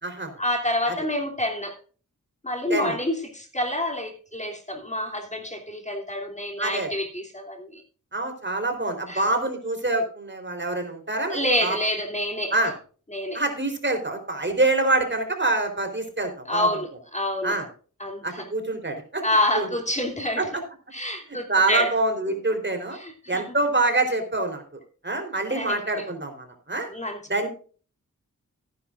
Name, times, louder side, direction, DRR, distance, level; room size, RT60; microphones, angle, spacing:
voice 1, 0.4-1.7 2.4-7.8 9.1-9.2 11.3-12.5 13.1-13.4 16.5-17.6 18.0-18.4 19.2-20.5 20.9-21.9 22.9-23.4 25.5-26.0 26.9-27.2, left 1 dB, 20° left, 1 dB, 2.9 m, -27 dB
voice 2, 6.6-6.9 8.1-11.8 12.5-12.7 13.3-16.7 17.4-17.7 18.2-19.2 19.5-19.7 20.4-20.5 21.5-23.0 23.3-24.6 25.0-26.9 27.3-27.5, right 2 dB, 35° right, 4 dB, 3.7 m, -25 dB
17.0 x 10.5 x 2.5 m, 0.40 s
cardioid pair, 50°, 33 cm